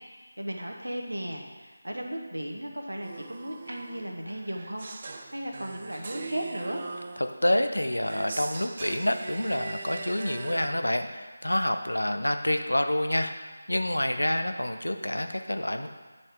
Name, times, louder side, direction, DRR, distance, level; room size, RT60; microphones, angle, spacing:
voice 1, 0.4-6.9, equal, 85° right, 2 dB, 1.2 m, -36 dB
sound 1, 3.0-10.7, right 3 dB, 35° right, 0.5 m, -41 dB
voice 2, 7.2-13.3 13.7-15.9, left 1 dB, 85° left, 7 dB, 0.6 m, -27 dB
8.8 x 5.5 x 3.5 m, 1.4 s
figure-of-eight pair, 160°, 0 cm